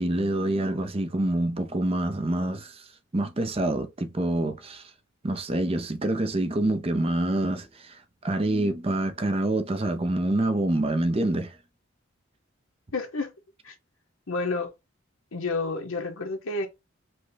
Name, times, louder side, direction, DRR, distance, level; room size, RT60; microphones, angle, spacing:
voice 1, 0.0-2.9 3.1-4.9 5.2-11.6, right 1 dB, 30° right, 0.6 m, -26 dB
voice 2, 12.9-13.3 13.6-13.7 14.3-14.7 15.3-16.7, left 3 dB, 85° left, 1.0 m, -30 dB
5.2 x 2.2 x 3.9 m
head